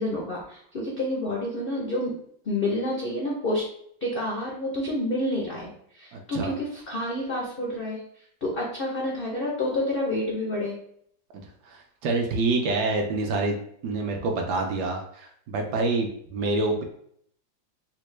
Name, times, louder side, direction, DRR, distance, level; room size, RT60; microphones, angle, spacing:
voice 1, 0.0-2.1 2.4-3.6 4.0-8.0 8.4-10.8, left 1 dB, 85° left, -3 dB, 0.5 m, -29 dB
voice 2, 6.1-6.5 11.7-13.6 13.8-16.8, right 3 dB, 70° right, 2 dB, 1.1 m, -27 dB
4.1 x 2.1 x 3.1 m, 0.67 s
omnidirectional pair, 2.0 m